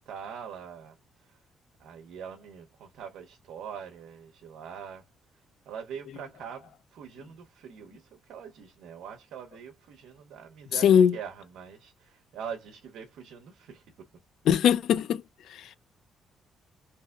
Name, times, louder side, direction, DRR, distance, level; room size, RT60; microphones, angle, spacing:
voice 1, 0.0-1.4 1.8-5.1 5.3-14.1, right 7 dB, 80° right, 0.6 m, -43 dB
voice 2, 10.8-11.1 14.5-15.2 15.5-15.6, left 8 dB, 75° left, 0.3 m, -20 dB
3.3 x 2.7 x 2.2 m
cardioid pair, 90°, 0 cm